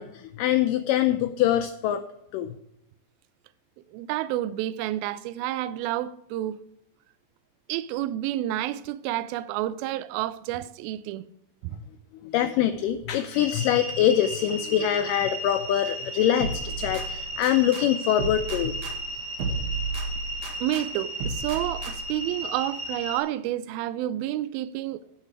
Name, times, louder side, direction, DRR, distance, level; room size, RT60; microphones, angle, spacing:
voice 1, 0.0-2.0 2.3-2.6 12.2-18.7, left 11 dB, 85° left, 1.9 m, -24 dB
voice 2, 3.9-6.6 7.7-11.3 11.6-11.8 20.6-25.0, right 13 dB, 85° right, 2.4 m, -30 dB
sound 1, 13.3-23.2, right 1 dB, 40° left, 2.4 m, -35 dB
sound 2, 16.4-17.8 18.2-20.8 21.2-22.2, right 4 dB, 55° right, 2.5 m, -33 dB
9.4 x 8.1 x 4.7 m
omnidirectional pair, 4.3 m